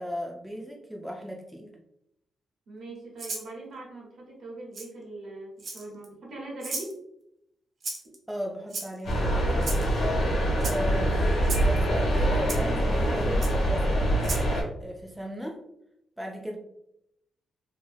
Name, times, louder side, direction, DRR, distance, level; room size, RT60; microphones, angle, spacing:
voice 1, 0.0-1.7 8.3-9.7 10.6-11.2 11.6-14.1 14.8-15.6 16.2-16.6, equal, 5° right, 0 dB, 0.3 m, -36 dB
voice 2, 2.7-7.0 10.4-10.7, right 2 dB, 75° right, -2 dB, 1.1 m, -41 dB
Rattle (instrument), 3.2-3.5 4.7-4.9 5.6-6.0 6.6-6.9 7.8-8.2 8.7-9.1 9.6-9.9 10.6-10.8 11.4-11.7 12.5-12.6 13.4-13.5 14.2-14.5, right 3 dB, 55° right, 0.7 m, -34 dB
sound 1, 9.0-14.6, right 1 dB, 80° left, 1.1 m, -24 dB
2.9 x 2.3 x 2.6 m, 0.80 s
cardioid pair, 125°, 0 cm